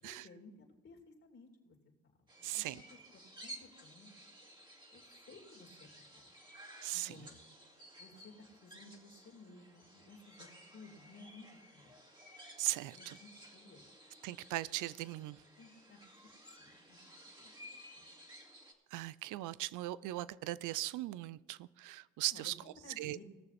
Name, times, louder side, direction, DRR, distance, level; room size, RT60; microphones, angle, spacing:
voice 1, 0.0-1.8 2.4-4.4 4.9-5.9 6.1-6.3 6.9-7.4 8.0-11.9 12.9-13.9 15.6-18.1 22.3-23.2, left 3 dB, 45° left, -1 dB, 2.9 m, -57 dB
sound 1, 2.3-18.7, right 1 dB, 15° right, 2.1 m, -56 dB
voice 2, 2.4-2.8 6.8-7.1 12.6-13.1 14.2-15.4 18.9-22.5 23.0-23.2, right 17 dB, 85° right, 19 dB, 0.5 m, -39 dB
20.0 x 6.9 x 4.2 m, 1.3 s
cardioid pair, 90°, 30 cm